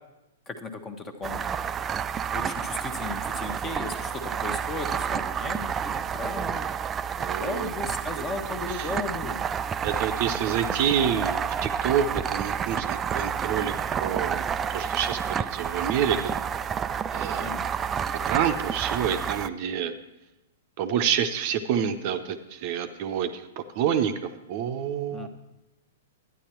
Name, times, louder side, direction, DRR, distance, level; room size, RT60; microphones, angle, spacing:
voice 1, 0.5-1.6 2.3-6.7 7.2-9.4 17.4-17.7 25.1-25.3, left 3 dB, 20° left, 7 dB, 1.1 m, -36 dB
sound 1, 1.2-19.5, right 7 dB, 20° right, 0.3 m, -30 dB
voice 2, 7.2-7.7 8.7-8.9 9.8-14.4 14.7-16.3 17.1-17.5 18.1-19.9 20.8-25.3, right 8 dB, 45° right, 7 dB, 0.7 m, -28 dB
11.5 x 9.8 x 4.4 m, 0.98 s
figure-of-eight pair, 110°, 0 cm